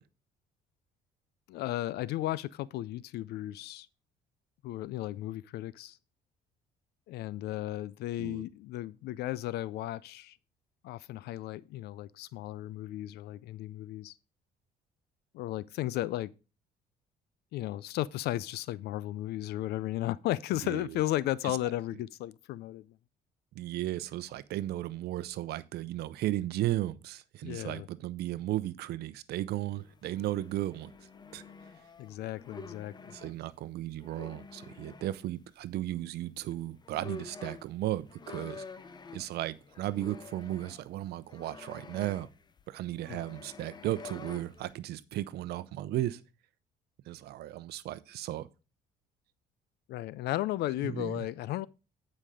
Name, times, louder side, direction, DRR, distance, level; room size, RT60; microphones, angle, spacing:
voice 1, 1.5-3.9 4.6-6.0 7.1-10.4 10.8-14.1 15.3-16.3 17.5-22.8 27.4-27.9 32.0-32.9 49.9-51.7, left 15 dB, 75° left, 0.4 m, -35 dB
voice 2, 20.6-21.0 21.4-21.6 23.5-30.9 31.3-31.4 33.1-38.6 39.1-42.3 42.7-46.2 47.1-48.5 50.8-51.3, right 14 dB, 70° right, 0.7 m, -35 dB
sound 1, 29.7-33.3 34.0-35.2 36.5-36.6 36.8-44.7, left 4 dB, 25° left, 0.7 m, -48 dB
9.9 x 5.4 x 4.9 m
cardioid pair, 110°, 17 cm